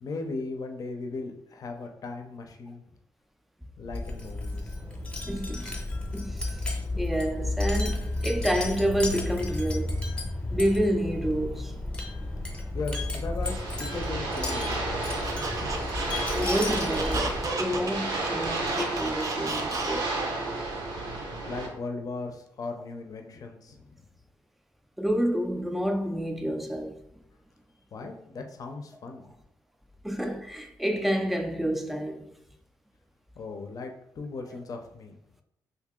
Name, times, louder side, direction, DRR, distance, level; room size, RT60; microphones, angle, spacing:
voice 1, 0.0-2.8 3.8-4.8 12.7-15.3 21.5-24.0 27.9-29.3 33.4-35.2, left 3 dB, 50° left, 0.5 m, -37 dB
Wind chime, 3.8-17.6, left 2 dB, 15° left, 0.8 m, -32 dB
voice 2, 5.3-5.8 6.1-6.6 7.0-10.1 10.5-11.7 16.3-20.1 25.0-26.9 30.0-32.3, equal, ahead, 0.4 m, -29 dB
sound 1, 13.4-21.7, right 2 dB, 85° right, 0.8 m, -32 dB
Squeak, 15.2-20.3, right 3 dB, 50° right, 0.6 m, -33 dB
2.8 x 2.6 x 3.7 m
cardioid pair, 90°, 8 cm